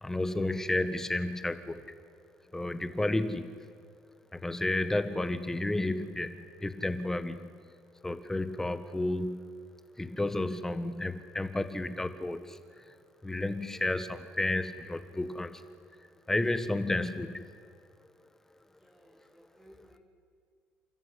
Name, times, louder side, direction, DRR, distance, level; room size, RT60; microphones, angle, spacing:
voice 1, 0.0-1.8 2.5-3.6 4.3-7.6 8.0-9.5 10.0-12.9 13.2-15.7 16.3-17.6, left 2 dB, 10° left, 10 dB, 1.5 m, -32 dB
voice 2, 18.8-20.0, equal, 10° right, -6 dB, 4.4 m, -59 dB
29.0 x 13.5 x 8.5 m, 2.2 s
cardioid pair, 105°, 4 cm